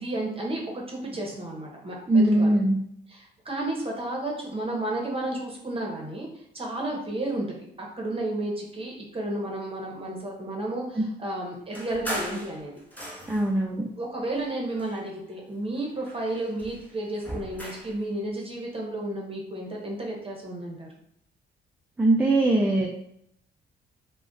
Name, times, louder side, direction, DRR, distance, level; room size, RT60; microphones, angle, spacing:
voice 1, 0.0-2.6 3.1-6.3 6.5-12.8 14.0-20.9, right 1 dB, 30° right, -1 dB, 0.8 m, -32 dB
voice 2, 2.1-2.8 13.3-13.9 22.0-22.9, right 2 dB, 10° right, -1 dB, 0.4 m, -21 dB
sound 1, 11.7-13.6 14.3-15.4 15.8-18.0, equal, 10° left, 0.9 m, -38 dB
2.3 x 2.1 x 3.8 m, 0.72 s
cardioid pair, 90°, 20 cm